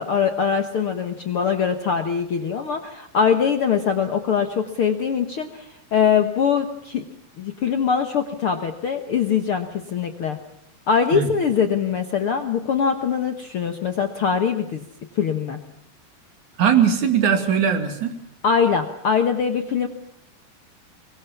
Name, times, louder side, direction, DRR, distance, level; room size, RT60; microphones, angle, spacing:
voice 1, 0.0-7.0 7.4-10.4 10.9-14.8 15.1-15.6 18.4-19.9, left 7 dB, 60° left, 6 dB, 1.5 m, -22 dB
voice 2, 16.6-18.1, right 8 dB, 60° right, 7 dB, 3.6 m, -19 dB
23.5 x 22.0 x 7.1 m, 0.77 s
omnidirectional pair, 4.2 m